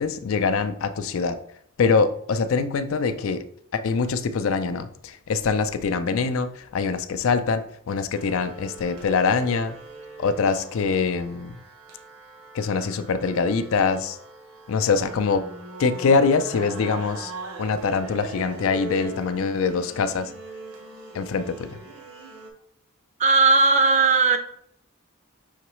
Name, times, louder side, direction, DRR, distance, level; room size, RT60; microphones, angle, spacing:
voice 1, 0.0-1.4 1.8-3.4 3.7-9.8 10.2-11.6 12.5-14.2 14.7-15.4 15.8-17.3 17.6-20.3 21.1-21.8, left 5 dB, 70° left, 11 dB, 0.4 m, -24 dB
sound 1, 8.1-22.5, right 3 dB, 85° right, 0.9 m, -41 dB
voice 2, 23.2-24.4, right 3 dB, 35° right, 7 dB, 0.4 m, -17 dB
5.7 x 3.0 x 3.0 m, 0.69 s
head